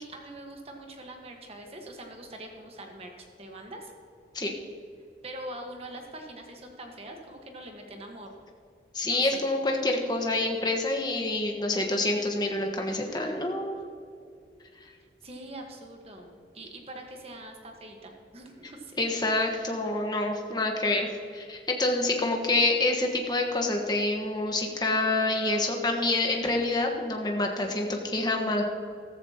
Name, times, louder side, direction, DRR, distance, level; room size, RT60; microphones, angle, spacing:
voice 1, 0.0-3.9 5.2-8.4 9.0-9.4 15.2-19.1, right 1 dB, 35° right, 2 dB, 1.3 m, -43 dB
voice 2, 8.9-13.8 19.0-21.1 21.3-28.6, left 2 dB, 25° left, 2 dB, 1.3 m, -27 dB
14.5 x 14.5 x 2.9 m, 2.3 s
head